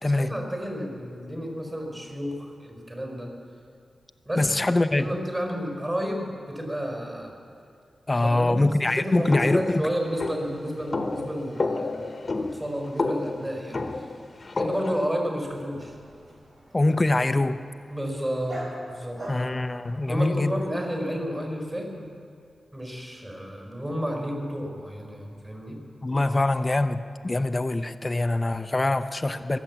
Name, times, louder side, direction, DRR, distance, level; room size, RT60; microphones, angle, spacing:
voice 1, 0.0-3.4 4.2-4.5 4.9-7.3 8.2-13.9 14.6-15.9 17.9-19.2 20.1-22.1 22.7-25.8, equal, 20° right, 2 dB, 4.5 m, -31 dB
voice 2, 4.4-5.1 8.1-9.9 16.7-17.6 19.3-20.6 26.0-29.6, left 2 dB, 30° left, 10 dB, 0.6 m, -24 dB
sound 1, 9.3-15.1, left 3 dB, 45° left, 1.1 m, -30 dB
Dog, 15.4-20.7, right 1 dB, 55° right, 4.8 m, -43 dB
22.0 x 8.2 x 7.4 m, 2.3 s
cardioid pair, 70°, 0 cm